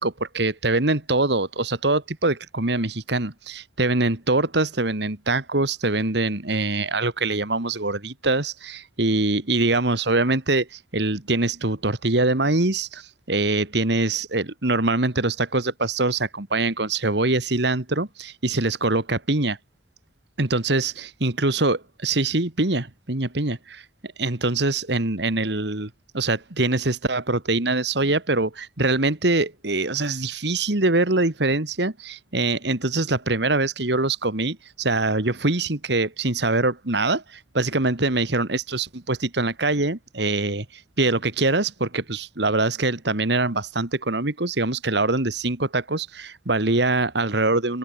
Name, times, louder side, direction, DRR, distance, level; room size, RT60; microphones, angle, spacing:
voice 1, 0.0-19.6 20.4-47.8, right 2 dB, 60° right, 2.0 m, -24 dB
head